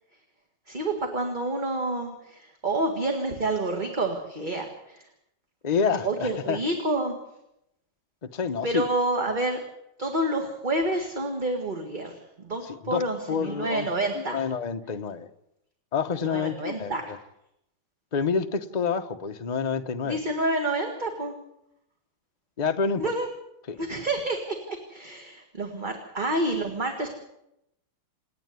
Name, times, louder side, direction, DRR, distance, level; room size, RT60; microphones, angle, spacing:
voice 1, 0.7-5.1 6.0-7.1 8.6-9.6 10.0-14.4 16.2-17.1 20.0-21.4 23.0-23.3 23.8-27.1, right 2 dB, 25° right, 4 dB, 1.9 m, -28 dB
voice 2, 5.6-6.6 8.3-8.9 12.6-13.9 14.1-15.3 15.9-17.2 18.1-20.2 22.6-23.0 23.7-23.8, left 6 dB, 35° left, 6 dB, 0.6 m, -28 dB
28.0 x 9.8 x 9.6 m, 0.84 s
omnidirectional pair, 2.3 m